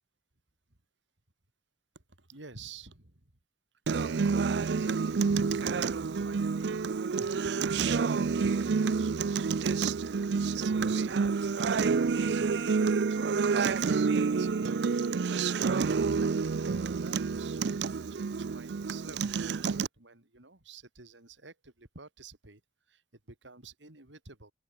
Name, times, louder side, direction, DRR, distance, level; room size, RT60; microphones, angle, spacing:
voice 1, 1.9-3.2 4.6-9.5 10.5-15.5 15.8-17.6 18.1-22.6 22.9-23.0 23.3-24.5, right 3 dB, 85° right, 3.4 m, -49 dB
Acoustic guitar, 3.9-19.9, right 5 dB, 65° right, 0.4 m, -28 dB
open air
head